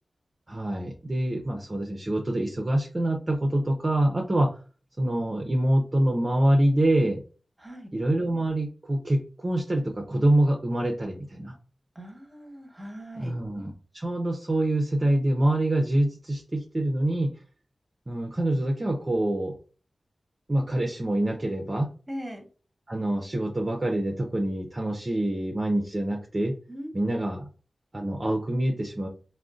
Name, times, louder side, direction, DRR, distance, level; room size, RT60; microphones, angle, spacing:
voice 1, 0.5-4.5 5.0-7.2 7.9-11.5 13.2-17.3 18.1-19.6 20.5-21.9 22.9-26.5 26.9-27.5 27.9-29.1, right 1 dB, 35° right, 2 dB, 0.6 m, -25 dB
voice 2, 11.9-13.3 22.1-22.5 26.7-27.3, equal, 15° right, 3 dB, 1.0 m, -40 dB
3.6 x 2.1 x 2.4 m, 0.37 s
cardioid pair, 55°, 0 cm